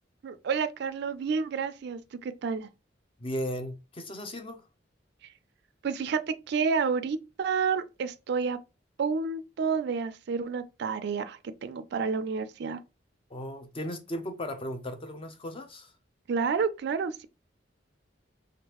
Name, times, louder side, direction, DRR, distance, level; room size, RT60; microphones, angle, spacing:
voice 1, 0.2-2.7 5.8-8.6 9.0-12.8 16.3-17.3, right 5 dB, 65° right, 0.4 m, -30 dB
voice 2, 3.2-4.6 13.3-15.9, equal, 30° left, 0.6 m, -36 dB
3.6 x 2.4 x 2.9 m
head